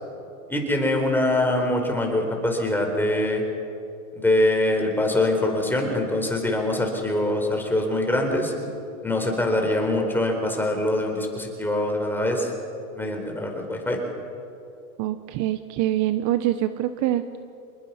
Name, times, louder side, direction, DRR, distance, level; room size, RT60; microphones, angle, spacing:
voice 1, 0.5-3.4 4.1-8.5 9.0-12.5 12.9-14.0, left 1 dB, 5° left, 2 dB, 4.4 m, -23 dB
voice 2, 15.0-17.2, right 13 dB, 40° right, 11 dB, 0.9 m, -24 dB
27.0 x 21.0 x 5.7 m, 2.6 s
hypercardioid pair, 120°, 43 cm